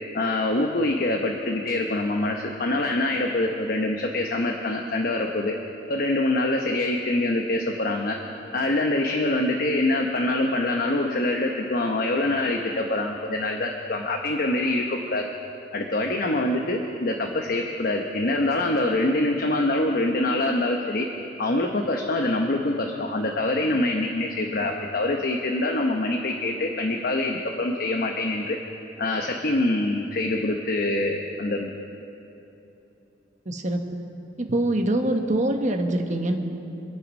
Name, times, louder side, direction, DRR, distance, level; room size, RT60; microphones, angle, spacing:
voice 1, 0.1-5.5 5.9-8.2 8.5-15.2 15.7-21.1 21.4-28.6 29.0-31.7, left 2 dB, 55° left, 2 dB, 1.0 m, -25 dB
voice 2, 33.5-33.8 34.4-36.4, right 1 dB, 45° right, 4 dB, 1.2 m, -24 dB
26.0 x 8.9 x 5.4 m, 2.9 s
head